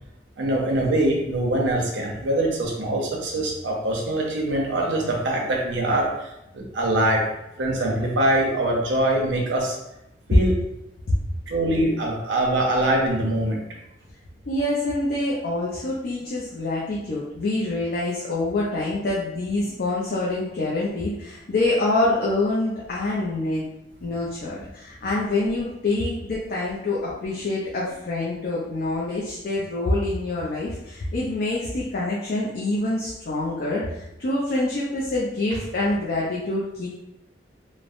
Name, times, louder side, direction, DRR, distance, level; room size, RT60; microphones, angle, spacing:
voice 1, 0.4-7.2 7.6-9.8 10.3-10.5 11.5-13.6, right 1 dB, 90° right, -2 dB, 0.7 m, -23 dB
voice 2, 14.5-23.6 24.0-36.9, left 2 dB, 55° left, -6 dB, 0.5 m, -26 dB
3.1 x 2.0 x 2.5 m, 0.85 s
head